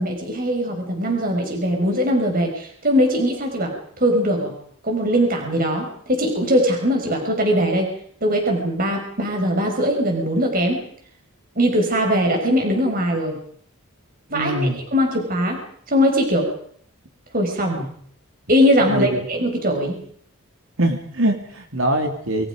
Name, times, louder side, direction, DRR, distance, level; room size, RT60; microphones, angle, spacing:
voice 1, 0.0-4.5 4.8-7.9 8.2-10.8 11.6-13.4 14.3-15.6 15.9-16.5 17.3-17.9 18.5-20.0, equal, 40° right, 2 dB, 5.8 m, -21 dB
voice 2, 14.3-14.8 18.8-19.2 20.8-22.5, right 1 dB, 65° right, 4 dB, 2.9 m, -23 dB
28.0 x 25.0 x 5.2 m, 0.63 s
head